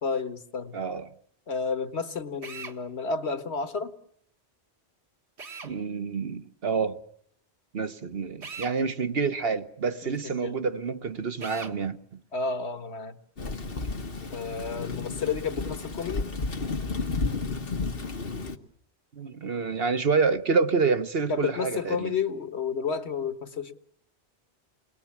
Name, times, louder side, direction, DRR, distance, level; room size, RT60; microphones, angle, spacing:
voice 1, 0.0-0.7 1.5-3.9 10.0-10.5 12.3-13.6 14.3-16.3 21.3-23.8, left 5 dB, 80° left, 1.7 m, -31 dB
voice 2, 0.7-1.1 5.6-7.0 7.7-12.0 19.1-22.2, right 5 dB, 65° right, 1.4 m, -28 dB
Drill, 2.4-2.8 5.4-5.7 8.4-8.8 11.4-11.8, right 5 dB, 85° right, 1.9 m, -40 dB
Thunder / Rain, 13.4-18.6, left 3 dB, 60° left, 1.7 m, -32 dB
29.0 x 21.5 x 7.3 m
omnidirectional pair, 1.1 m